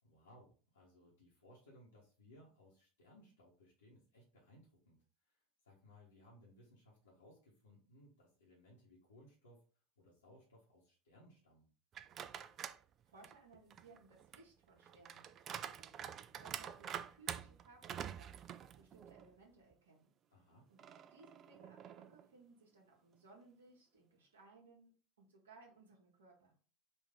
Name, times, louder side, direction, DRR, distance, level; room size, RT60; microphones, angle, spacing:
voice 1, 0.0-5.0 5.3-9.6 10.0-11.7 20.3-20.7, left 1 dB, 85° left, -6 dB, 1.2 m, -63 dB
sound 1, 11.9-12.8 13.2-19.3 19.7-19.8 20.8-22.3, right 9 dB, 40° right, 0.3 m, -47 dB
voice 2, 12.5-20.1 20.7-20.8 21.1-24.9 25.2-26.5, right 3 dB, 80° right, -3 dB, 1.1 m, -63 dB
4.3 x 2.6 x 3.6 m, 0.39 s
figure-of-eight pair, 75°, 0 cm